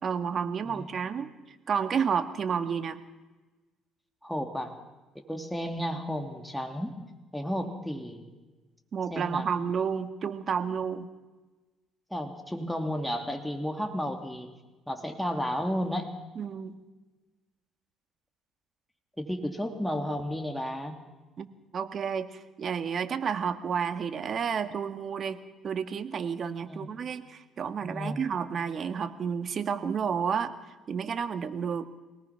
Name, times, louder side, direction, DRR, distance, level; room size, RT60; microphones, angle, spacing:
voice 1, 0.0-1.4 1.7-3.0 8.9-11.1 16.4-16.8 21.4-21.5 21.7-30.5 30.9-31.9, right 7 dB, 45° right, 9 dB, 1.7 m, -31 dB
voice 2, 4.2-4.7 5.1-7.0 7.3-8.2 9.1-9.5 12.1-14.5 14.9-16.1 19.2-20.9 26.6-26.9 27.8-28.2, equal, ahead, 4 dB, 2.7 m, -33 dB
25.0 x 18.5 x 5.9 m, 1.2 s
cardioid pair, 95°, 0 cm